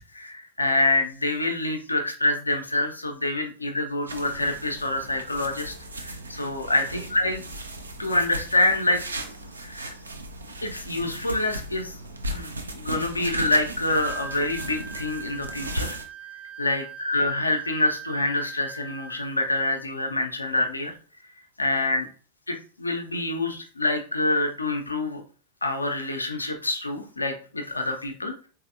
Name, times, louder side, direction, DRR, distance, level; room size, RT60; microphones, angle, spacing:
voice 1, 0.0-7.5 8.0-9.0 9.6-9.9 10.6-11.9 12.3-16.0 16.6-20.9 21.6-22.1 22.5-25.2 25.6-28.3, left 2 dB, 80° left, 4 dB, 0.6 m, -26 dB
sound 1, 4.1-16.1, right 1 dB, 75° right, 0.5 m, -36 dB
Wind instrument woodwind instrument, 13.9-19.3, right 5 dB, 30° right, 0.6 m, -40 dB
4.0 x 2.7 x 2.5 m, 0.39 s
figure-of-eight pair, 90°, 0 cm